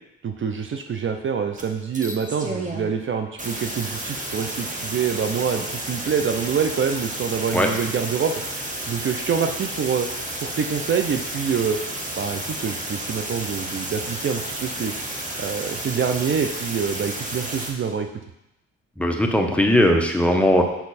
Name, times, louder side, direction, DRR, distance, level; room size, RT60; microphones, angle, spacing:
voice 1, 0.2-8.3 8.9-10.1 10.4-11.8 12.2-14.9 15.4-18.1, right 6 dB, 40° right, 5 dB, 0.6 m, -26 dB
sound 1, 1.6-1.7 1.9-2.9 3.4-17.7, right 1 dB, 25° right, 1.4 m, -31 dB
voice 2, 19.0-20.6, left 1 dB, 5° left, 2 dB, 1.0 m, -18 dB
6.7 x 5.7 x 4.2 m, 0.86 s
cardioid pair, 90°, 30 cm